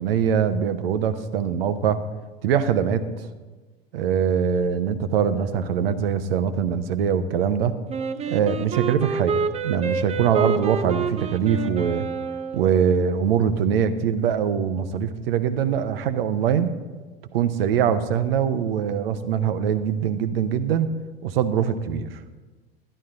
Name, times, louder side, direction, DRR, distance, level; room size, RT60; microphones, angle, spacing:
voice 1, 0.0-2.0 2.4-3.1 3.9-7.8 8.3-12.1 12.5-16.8 17.3-20.9 21.2-22.1, right 8 dB, 70° right, 11 dB, 0.8 m, -23 dB
Wind instrument woodwind instrument, 7.9-13.0, right 5 dB, 20° right, 0.6 m, -28 dB
11.5 x 11.0 x 3.8 m, 1.3 s
hypercardioid pair, 80°, 31 cm